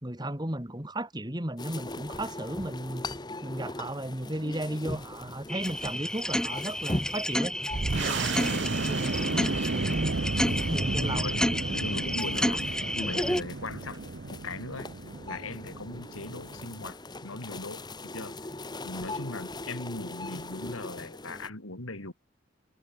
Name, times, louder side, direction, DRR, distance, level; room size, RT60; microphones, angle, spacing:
voice 1, 0.0-3.1 3.4-7.6 7.9-10.1 10.5-11.3, right 1 dB, 20° right, 2.4 m, -35 dB
sound 1, 1.6-21.5, left 2 dB, 20° left, 1.4 m, -41 dB
sound 2, 5.5-13.4, left 1 dB, 5° left, 1.6 m, -31 dB
sound 3, 7.7-16.9, right 3 dB, 55° right, 0.8 m, -33 dB
voice 2, 11.0-14.0 14.3-14.9 15.3-18.4 18.8-22.1, left 2 dB, 85° left, 3.9 m, -39 dB
head